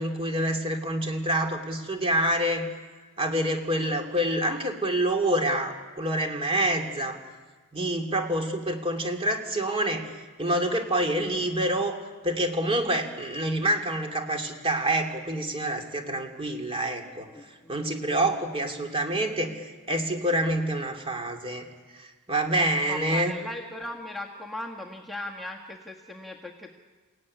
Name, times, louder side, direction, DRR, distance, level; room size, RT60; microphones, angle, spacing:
voice 1, 0.0-2.7 3.2-7.2 7.7-10.0 10.4-17.3 17.7-21.6 21.9-23.3, right 1 dB, 25° right, 4 dB, 2.9 m, -27 dB
voice 2, 17.2-18.3 22.8-26.7, left 1 dB, ahead, -2 dB, 1.6 m, -39 dB
29.0 x 16.5 x 9.8 m, 1.4 s
head